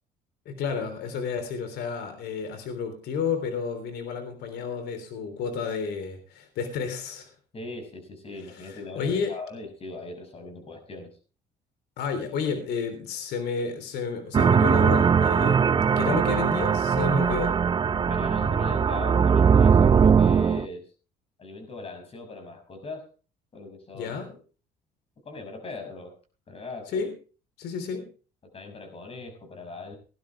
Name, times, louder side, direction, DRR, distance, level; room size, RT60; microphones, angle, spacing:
voice 1, 0.5-7.3 8.6-9.3 12.0-17.5 23.9-24.3 26.9-27.1 27.6-28.1, left 5 dB, 75° left, 7 dB, 3.5 m, -31 dB
voice 2, 7.5-11.1 17.8-20.8 21.4-23.1 23.5-24.4 25.2-26.2 26.5-27.1 28.5-30.0, left 3 dB, 35° left, 6 dB, 6.2 m, -39 dB
sound 1, 14.3-20.6, right 6 dB, 30° right, 0.5 m, -20 dB
19.0 x 11.0 x 3.4 m, 0.36 s
cardioid pair, 110°, 17 cm